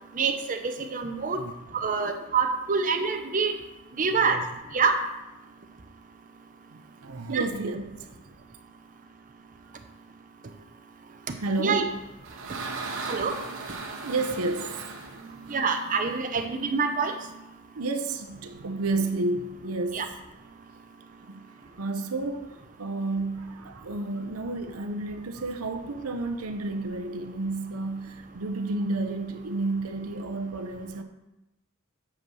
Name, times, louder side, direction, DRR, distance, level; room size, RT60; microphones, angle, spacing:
voice 1, 0.1-1.4 1.7-3.6 4.0-4.4 4.7-5.0 7.3-7.4 11.6-11.8 13.1-13.4 15.5-17.2 19.9-20.1, right 5 dB, 40° right, 5 dB, 0.7 m, -26 dB
voice 2, 4.1-4.4 6.7-8.1 11.4-12.0 12.8-13.0 14.0-14.9 17.8-20.0 21.2-21.4 21.8-22.5 22.8-31.0, right 2 dB, 85° right, 7 dB, 0.7 m, -31 dB
sound 1, 11.8-16.4, right 3 dB, 60° right, 1.0 m, -38 dB
7.2 x 5.2 x 6.2 m, 0.97 s
head